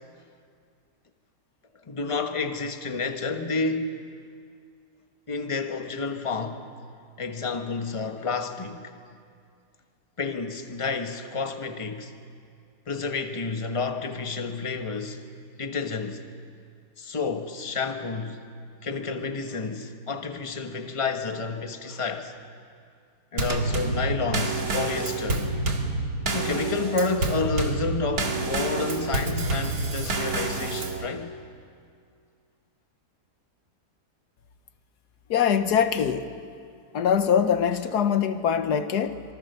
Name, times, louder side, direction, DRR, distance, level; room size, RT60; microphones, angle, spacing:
voice 1, 1.9-4.0 5.3-6.6 7.2-8.9 10.2-12.1 12.9-15.2 15.6-16.2 17.0-18.4 18.8-22.3 23.3-25.5 26.3-31.3, left 4 dB, 20° left, 1.3 m, -30 dB
Drum kit / Snare drum / Bass drum, 23.4-31.1, right 3 dB, 65° right, 2.5 m, -28 dB
voice 2, 35.3-36.3 36.9-39.2, left 8 dB, 80° left, 1.5 m, -23 dB
26.5 x 24.0 x 6.8 m
omnidirectional pair, 1.7 m